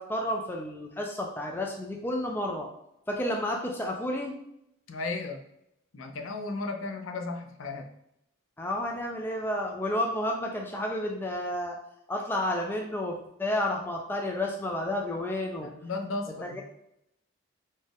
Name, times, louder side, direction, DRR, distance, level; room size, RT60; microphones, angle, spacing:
voice 1, 0.0-2.7 3.1-4.4 8.6-11.8 12.1-15.7 16.4-16.6, left 1 dB, 10° left, 0 dB, 0.3 m, -31 dB
voice 2, 4.9-5.4 5.9-7.9 15.6-16.6, left 3 dB, 70° left, 4 dB, 0.5 m, -35 dB
4.2 x 2.4 x 3.4 m, 0.79 s
head